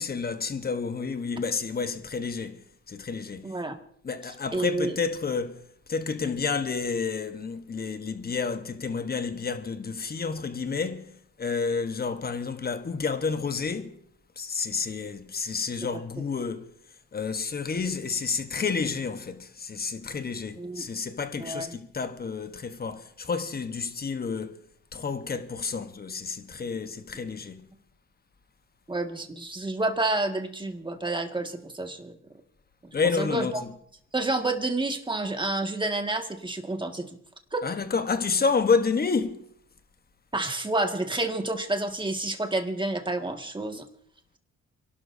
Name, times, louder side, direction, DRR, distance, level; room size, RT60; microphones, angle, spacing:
voice 1, 0.0-2.6 2.9-3.5 4.0-5.6 5.9-14.0 14.4-16.7 17.1-24.6 24.9-27.7 32.9-33.5 37.6-39.4, left 5 dB, 30° left, 1.1 m, -30 dB
voice 2, 3.4-3.8 4.2-5.0 15.9-16.2 20.6-20.8 21.4-21.8 28.9-32.2 33.1-33.6 34.1-37.1 37.5-37.7 40.3-43.9, right 2 dB, 15° right, 1.8 m, -29 dB
29.0 x 12.0 x 2.7 m
cardioid pair, 90°, 30 cm